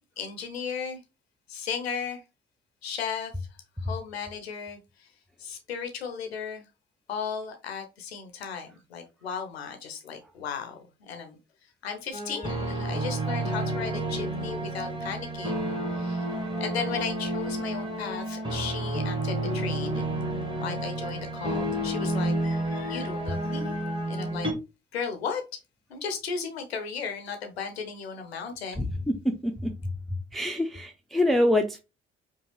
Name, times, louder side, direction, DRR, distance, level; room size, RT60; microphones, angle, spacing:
voice 1, 0.2-1.0 1.5-2.2 2.8-3.3 3.8-5.1 5.4-6.6 7.1-11.4 11.8-16.3 16.6-20.3 20.6-24.5 24.9-25.4 25.9-28.8, left 6 dB, 85° left, 0.6 m, -35 dB
sound 1, 12.1-24.5, right 1 dB, 15° right, 1.8 m, -30 dB
voice 2, 30.3-31.8, left 1 dB, ahead, 0.6 m, -25 dB
5.1 x 2.3 x 3.2 m
figure-of-eight pair, 45°, 30 cm